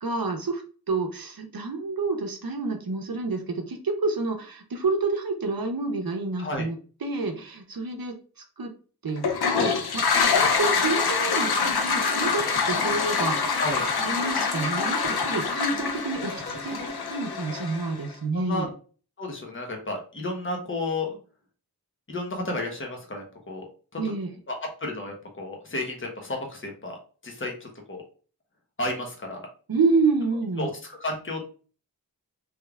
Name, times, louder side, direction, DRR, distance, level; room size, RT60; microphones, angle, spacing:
voice 1, 0.0-0.6 0.9-8.2 8.6-8.7 9.0-13.6 14.0-16.3 16.6-16.8 17.1-18.7 24.0-24.3 29.7-30.7, right 3 dB, 70° right, 4 dB, 0.7 m, -28 dB
Toilet flush, 9.2-18.1, left 5 dB, 90° left, 0.5 m, -25 dB
sound 1, 11.6-17.3, left 1 dB, 65° left, 1.7 m, -40 dB
voice 2, 18.3-18.7 19.2-21.2 22.1-23.6 23.9-24.0 24.5-28.0 28.8-29.4 30.6-31.4, left 2 dB, 35° left, 1 dB, 0.9 m, -32 dB
3.3 x 3.2 x 2.3 m, 0.39 s
wide cardioid pair, 55°, 37 cm